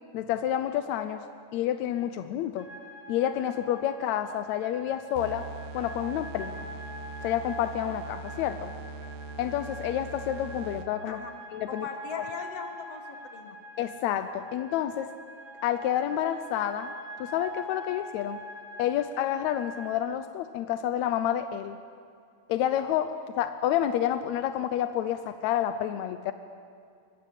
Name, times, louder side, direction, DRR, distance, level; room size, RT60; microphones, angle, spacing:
voice 1, 0.1-1.2 1.5-2.7 3.1-5.5 5.7-6.7 7.2-8.7 9.4-11.2 11.5-11.9 12.1-12.3 13.8-15.1 15.6-18.4 18.8-21.8 22.5-26.3, left 11 dB, 75° left, 10 dB, 1.7 m, -29 dB
sound 1, 2.6-20.1, equal, 5° left, 2.5 m, -44 dB
sound 2, 5.1-11.1, right 3 dB, 75° right, 1.9 m, -41 dB
voice 2, 11.7-13.6, left 5 dB, 50° left, 4 dB, 2.8 m, -40 dB
24.5 x 21.5 x 7.4 m, 2.3 s
omnidirectional pair, 3.9 m